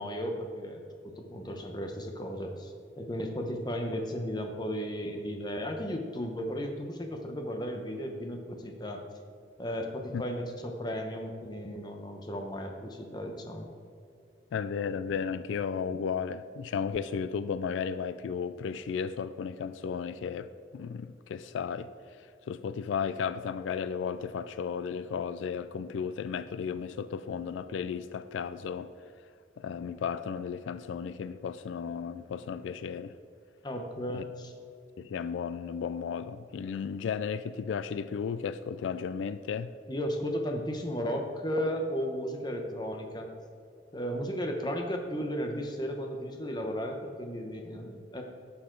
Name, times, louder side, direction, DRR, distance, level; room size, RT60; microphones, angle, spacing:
voice 1, 0.0-9.0 9.6-13.7 33.6-34.5 39.9-43.3 43.9-48.2, equal, 20° left, 0.9 m, -35 dB
voice 2, 14.5-21.9 22.2-28.9 29.6-33.1 34.1-34.2 35.0-39.7, left 6 dB, 85° left, 0.3 m, -34 dB
11.0 x 7.0 x 3.8 m
head